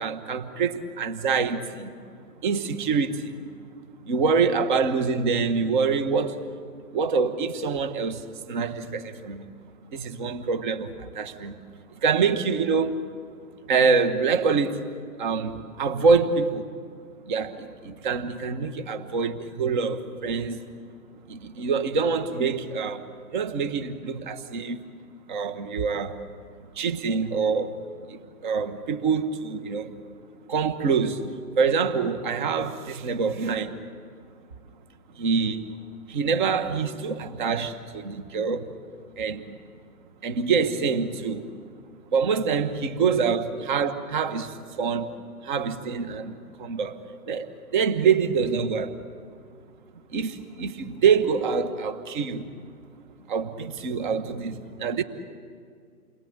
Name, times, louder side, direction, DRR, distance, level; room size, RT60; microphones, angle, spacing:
voice 1, 0.0-1.9 2.4-3.2 4.1-6.4 6.9-8.2 8.5-9.4 9.9-10.9 11.1-11.5 12.0-13.0 13.7-14.8 15.2-16.6 17.3-20.6 21.3-23.1 23.3-24.8 25.3-26.1 26.8-27.7 28.4-29.9 30.5-31.2 31.6-33.7 35.2-35.6 36.1-38.7 39.2-39.4 40.2-41.4 42.1-44.5 44.8-45.1 45.4-46.3 46.6-46.9 47.3-47.5 47.7-48.9 50.1-52.4 53.3-55.0, right 5 dB, 30° right, 10 dB, 1.5 m, -25 dB
29.0 x 22.5 x 9.0 m, 2.2 s
hypercardioid pair, 150°, 45 cm